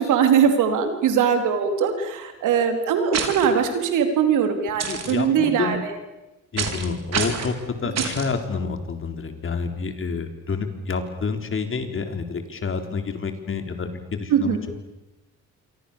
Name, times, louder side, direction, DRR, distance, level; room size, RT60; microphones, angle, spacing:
voice 1, 0.0-5.9 14.3-14.6, right 7 dB, 85° right, 6 dB, 4.1 m, -21 dB
sound 1, 3.1-3.5 4.8-5.1 6.6-6.9 7.1-7.5 8.0-8.3, right 7 dB, 60° right, 4.5 m, -27 dB
voice 2, 4.9-5.8 6.5-14.6, left 5 dB, 45° left, 7 dB, 3.9 m, -28 dB
28.0 x 24.0 x 7.2 m, 1.0 s
cardioid pair, 90°, 30 cm